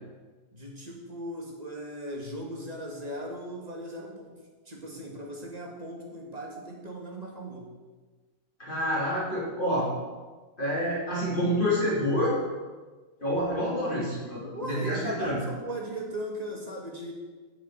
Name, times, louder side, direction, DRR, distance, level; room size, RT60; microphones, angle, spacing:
voice 1, 0.5-4.3 4.7-7.7 14.5-17.1, right 1 dB, 25° right, -1 dB, 1.9 m, -38 dB
voice 2, 8.6-9.9 10.6-12.4 13.2-15.4, equal, 30° left, -6 dB, 3.2 m, -28 dB
7.3 x 7.0 x 7.8 m, 1.3 s
omnidirectional pair, 1.8 m